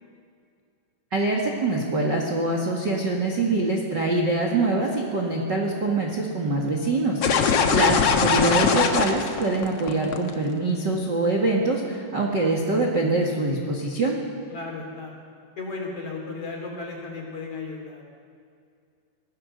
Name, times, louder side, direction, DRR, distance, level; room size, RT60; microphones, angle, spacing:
voice 1, 1.1-7.2 7.7-14.2, right 2 dB, 40° right, 0 dB, 1.8 m, -24 dB
sound 1, 7.2-10.3, left 6 dB, 65° left, 1.5 m, -21 dB
voice 2, 14.5-15.2 15.6-18.0, left 3 dB, 35° left, 0 dB, 4.0 m, -35 dB
23.5 x 17.5 x 6.7 m, 2.3 s
omnidirectional pair, 4.8 m